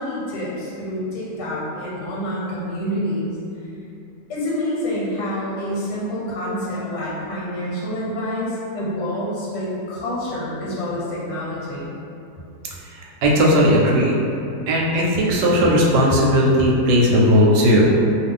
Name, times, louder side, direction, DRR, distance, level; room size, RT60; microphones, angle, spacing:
voice 1, 0.0-3.3 3.6-3.7 4.3-11.9, left 1 dB, 85° left, -6 dB, 1.3 m, -27 dB
voice 2, 12.9-14.2 14.7-17.9, equal, 90° right, -3 dB, 1.2 m, -16 dB
2.7 x 2.4 x 3.5 m, 2.7 s
omnidirectional pair, 1.8 m